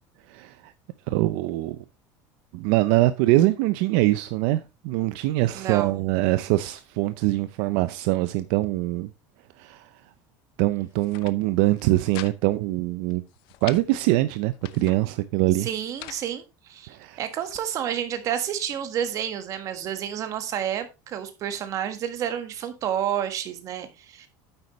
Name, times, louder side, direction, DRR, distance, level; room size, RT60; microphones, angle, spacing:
voice 1, 0.3-0.7 1.1-1.8 2.5-9.1 9.6-9.9 10.6-13.2 13.6-15.7 16.9-17.2, right 17 dB, 65° right, 0.6 m, -23 dB
voice 2, 5.5-6.1 15.6-24.3, right 10 dB, 35° right, 1.5 m, -30 dB
sound 1, 10.9-11.4 11.7-12.3 12.6-12.7 13.1-13.8 14.4-15.0 15.6-16.2 16.9-17.7, left 16 dB, 55° left, 0.7 m, -43 dB
9.7 x 8.0 x 3.1 m
cardioid pair, 160°, 9 cm